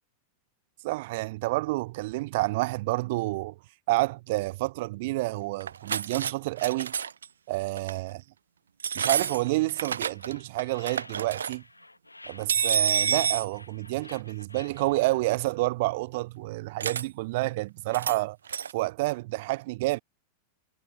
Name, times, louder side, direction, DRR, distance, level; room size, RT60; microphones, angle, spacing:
voice 1, 0.8-3.6 3.9-6.9 7.5-8.2 8.9-11.6 12.3-18.4 18.7-20.0, right 21 dB, 50° right, 1.3 m, -29 dB
sound 1, 5.6-6.3 6.6-7.3 7.8-8.0 8.8-10.3 10.6-11.5 12.5-13.5 16.8-17.0 17.9-18.2 18.5-18.7, right 7 dB, 70° right, 2.8 m, -28 dB
sound 2, 9.0-15.1, left 2 dB, 85° left, 6.2 m, -49 dB
figure-of-eight pair, 90°, 0 cm